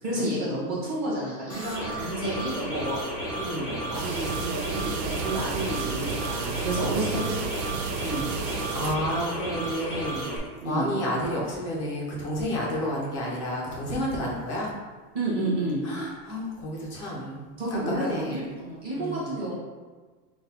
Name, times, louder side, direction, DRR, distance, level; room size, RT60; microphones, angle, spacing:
voice 1, 0.0-3.0 3.9-7.2 8.0-8.2 10.6-10.9 15.1-15.8 17.6-19.6, right 1 dB, 20° right, -7 dB, 1.1 m, -30 dB
sound 1, 1.5-10.4, right 1 dB, ahead, 0.9 m, -33 dB
voice 2, 3.4-3.8 8.7-10.3 10.6-14.7 15.8-17.4 17.7-18.4 19.0-19.3, equal, 20° left, -4 dB, 0.5 m, -30 dB
sound 2, 3.9-9.0, right 7 dB, 80° right, 0.6 m, -33 dB
5.7 x 2.3 x 4.0 m, 1.4 s
supercardioid pair, 180°, 49 cm